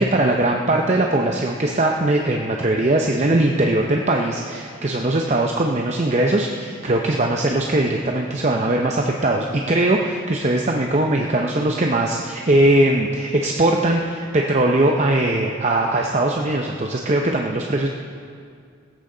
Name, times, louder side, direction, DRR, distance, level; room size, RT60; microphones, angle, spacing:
voice 1, 0.0-17.9, right 1 dB, 35° right, 1 dB, 0.7 m, -20 dB
16.5 x 14.0 x 3.9 m, 2.2 s
head